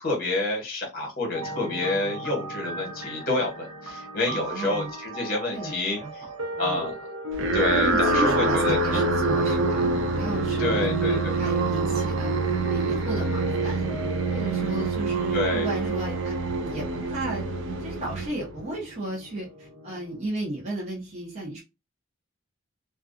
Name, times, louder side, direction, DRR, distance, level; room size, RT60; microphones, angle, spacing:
voice 1, 0.0-6.2 6.6-6.9 7.5-9.0 10.6-11.3 15.3-15.7, left 2 dB, 45° left, 1 dB, 1.0 m, -28 dB
sound 1, 1.3-20.2, left 1 dB, 80° right, 0.9 m, -36 dB
voice 2, 4.3-4.9 5.5-5.7 6.0-6.1 6.5-6.8 7.5-14.0 14.3-17.4 17.8-21.6, right 1 dB, 30° right, -4 dB, 0.7 m, -34 dB
sound 2, 7.3-18.8, right 3 dB, 60° right, 0.3 m, -26 dB
2.4 x 2.3 x 2.5 m, 0.26 s
head